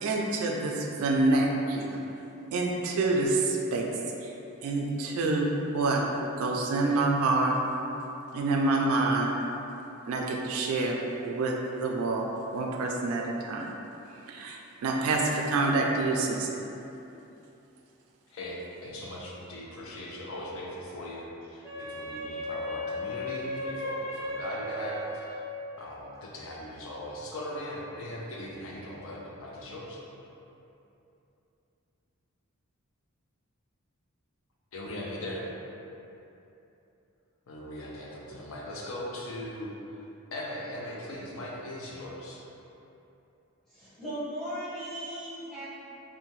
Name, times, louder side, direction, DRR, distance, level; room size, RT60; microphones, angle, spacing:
voice 1, 0.0-2.0 2.5-3.9 4.2-4.3 4.6-6.0 6.4-7.6 8.3-9.3 10.1-12.3 12.5-13.7 14.3-16.6, right 2 dB, 75° right, 0 dB, 0.3 m, -27 dB
voice 2, 18.3-25.4 25.8-30.0 34.7-35.4 37.5-39.7 40.3-42.4, left 1 dB, 65° left, -3 dB, 0.4 m, -39 dB
Wind instrument woodwind instrument, 21.6-25.7, left 1 dB, 15° right, 0.5 m, -36 dB
voice 3, 43.7-45.6, equal, ahead, -14 dB, 0.9 m, -37 dB
2.7 x 2.1 x 3.0 m, 2.9 s
head